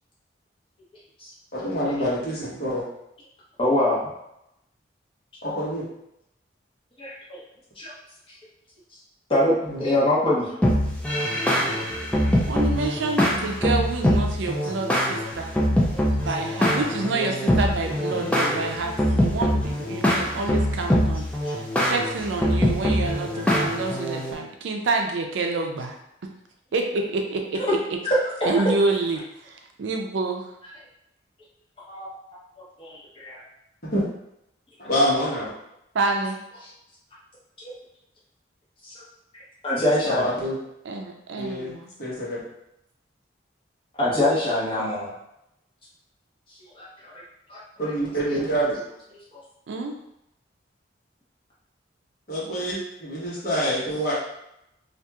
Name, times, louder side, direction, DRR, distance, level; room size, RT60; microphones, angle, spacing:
voice 1, 1.5-2.8 5.4-5.8 9.6-9.9 33.9-34.0 34.8-35.5 40.0-40.5 41.3-41.7 42.0-42.4 47.8-48.8 52.3-54.1, equal, 55° left, -8 dB, 1.0 m, -26 dB
voice 2, 3.6-4.0 7.0-7.4 7.8-7.9 9.3-10.5 15.9-16.0 27.6-27.7 28.0-28.6 31.9-32.1 32.8-33.4 37.6-37.7 38.8-39.0 39.6-40.2 44.0-45.1 46.8-47.2 47.5-47.6 49.3-49.4, left 1 dB, 30° left, -8 dB, 0.9 m, -24 dB
sound 1, 10.6-24.3, equal, 5° left, 0.3 m, -23 dB
voice 3, 12.5-15.5 16.2-21.3 21.5-26.0 26.7-27.8 28.4-30.5 35.9-36.4 40.9-41.9 49.7-50.0, right 3 dB, 80° right, 3 dB, 0.4 m, -28 dB
2.8 x 2.4 x 2.3 m, 0.81 s
head